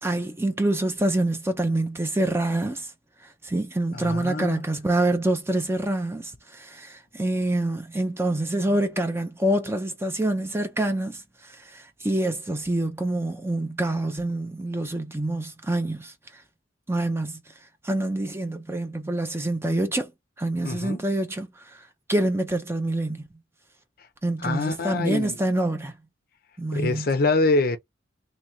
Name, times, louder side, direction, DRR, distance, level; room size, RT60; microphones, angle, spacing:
voice 1, 0.0-2.9 3.4-16.1 16.9-17.4 17.8-20.1 20.4-21.8 22.1-23.2 24.2-25.9 26.6-27.1, right 1 dB, 10° right, 0.5 m, -26 dB
voice 2, 3.9-4.6 20.6-21.0 24.4-25.4 26.7-27.8, left 3 dB, 45° left, 0.5 m, -25 dB
3.1 x 2.4 x 4.3 m
head